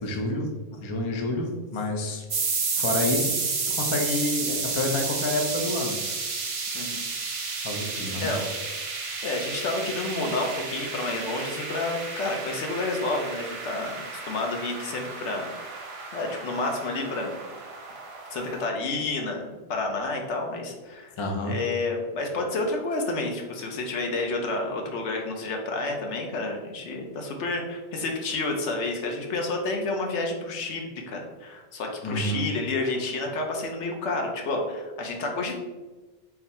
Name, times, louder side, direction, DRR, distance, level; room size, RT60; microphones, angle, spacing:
voice 1, 0.0-0.5 0.8-2.2 2.8-3.3 3.7-6.0 7.6-8.3 21.2-21.5 32.0-32.4, left 2 dB, 35° left, 1 dB, 0.5 m, -28 dB
sound 1, 2.3-18.7, right 4 dB, 45° right, 0.4 m, -32 dB
voice 2, 9.2-15.5 16.1-17.3 18.3-21.1 21.4-35.6, left 2 dB, 75° left, 2 dB, 1.1 m, -30 dB
4.0 x 2.7 x 4.1 m, 1.2 s
omnidirectional pair, 1.2 m